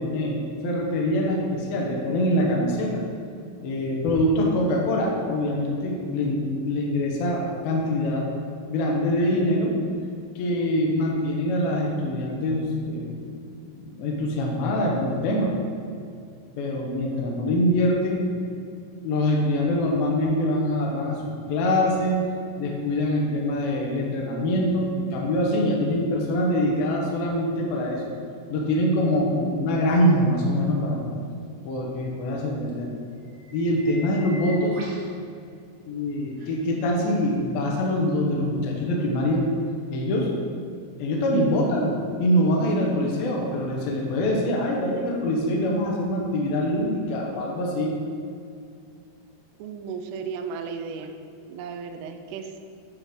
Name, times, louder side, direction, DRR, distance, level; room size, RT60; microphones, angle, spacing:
voice 1, 0.0-3.0 3.6-8.3 8.7-9.8 10.4-13.1 13.6-15.6 16.6-18.3 19.0-21.2 21.5-28.1 28.5-31.0 31.6-32.9 33.5-34.8 35.9-39.4 39.9-40.3 41.0-47.9, left 1 dB, 80° left, -2 dB, 2.2 m, -24 dB
sound 1, 33.2-35.1 36.4-36.5 38.1-38.2, left 1 dB, 70° right, 1.9 m, -42 dB
voice 2, 49.6-51.1 51.5-52.6, right 5 dB, 85° right, 6 dB, 3.1 m, -35 dB
9.8 x 3.9 x 6.2 m, 2.3 s
omnidirectional pair, 5.7 m